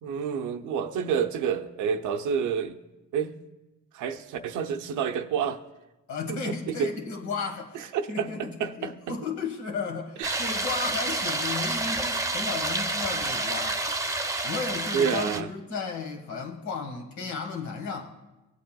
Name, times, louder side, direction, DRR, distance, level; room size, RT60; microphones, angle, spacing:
voice 1, 0.0-2.7 3.1-3.3 3.9-5.6 6.3-6.9 7.9-9.1 10.2-10.4 14.9-15.5, right 7 dB, 80° right, 6 dB, 0.7 m, -29 dB
voice 2, 6.1-13.8 14.4-18.1, left 5 dB, 65° left, 3 dB, 1.6 m, -34 dB
sound 1, 10.2-15.4, right 2 dB, 10° right, 0.7 m, -29 dB
18.0 x 8.0 x 2.3 m, 1.0 s
cardioid pair, 90°, 30 cm